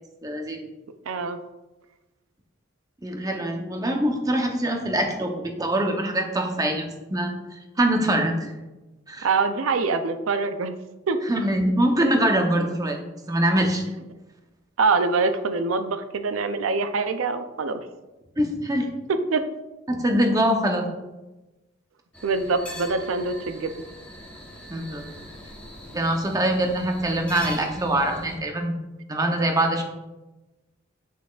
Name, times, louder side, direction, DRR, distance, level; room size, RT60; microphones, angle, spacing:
voice 1, 0.2-0.7 3.0-8.5 9.1-9.3 11.3-13.0 13.3-13.8 18.4-18.9 19.9-20.9 24.7-25.0 25.9-28.8 29.1-29.8, right 1 dB, 20° right, 3 dB, 0.7 m, -24 dB
voice 2, 1.1-1.4 9.2-10.7 11.1-11.2 14.8-17.8 19.3-19.4 22.2-23.7, right 4 dB, 90° right, 9 dB, 0.5 m, -24 dB
sound 1, 22.1-28.4, equal, 5° left, 1.0 m, -41 dB
8.4 x 5.8 x 2.4 m, 1.1 s
head